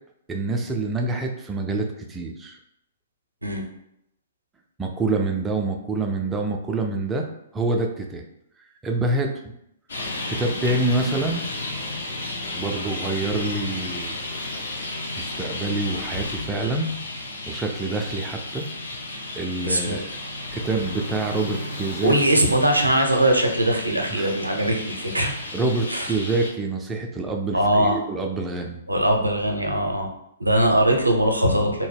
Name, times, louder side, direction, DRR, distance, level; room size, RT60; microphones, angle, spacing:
voice 1, 0.3-2.6 4.8-7.3 7.5-8.2 8.8-9.3 10.3-11.4 12.5-14.1 15.2-17.0 17.5-18.7 19.4-20.0 20.5-22.2 24.1-24.3 25.5-28.8, right 2 dB, 10° right, 2 dB, 0.3 m, -26 dB
Traffic noise roadway noise, 9.9-26.5, left 2 dB, 65° left, 0.5 m, -33 dB
voice 2, 19.6-20.0 22.0-25.3 25.9-26.1 27.5-28.0 28.9-30.1 30.4-31.9, right 1 dB, 85° right, 2 dB, 0.5 m, -21 dB
2.7 x 2.1 x 3.3 m, 0.78 s
figure-of-eight pair, 115°, 0 cm